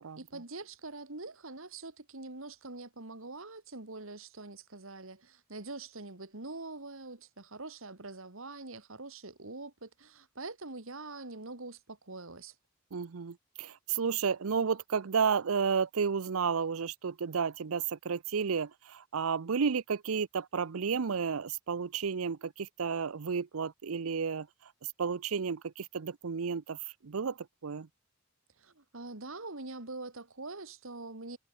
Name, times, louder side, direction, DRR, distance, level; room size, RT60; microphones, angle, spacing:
voice 1, 0.2-12.5 28.6-31.4, right 3 dB, 70° right, 2.6 m, -44 dB
voice 2, 12.9-26.8 27.0-27.9, right 6 dB, 85° right, 0.6 m, -32 dB
head